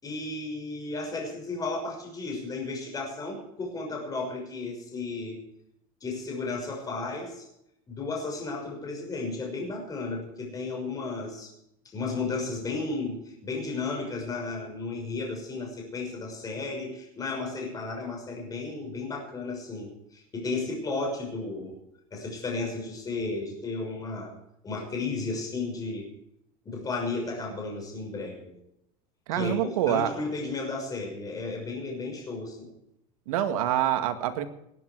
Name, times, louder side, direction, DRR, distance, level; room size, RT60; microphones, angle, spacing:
voice 1, 0.0-5.4 6.0-7.4 7.9-11.5 11.8-21.8 22.1-24.3 24.6-26.1 26.6-28.6 29.3-32.7, left 3 dB, 20° left, 1 dB, 6.2 m, -34 dB
voice 2, 29.3-30.1 33.3-34.5, right 11 dB, 85° right, 8 dB, 2.1 m, -26 dB
19.5 x 10.5 x 4.7 m, 0.79 s
supercardioid pair, 145°, 18 cm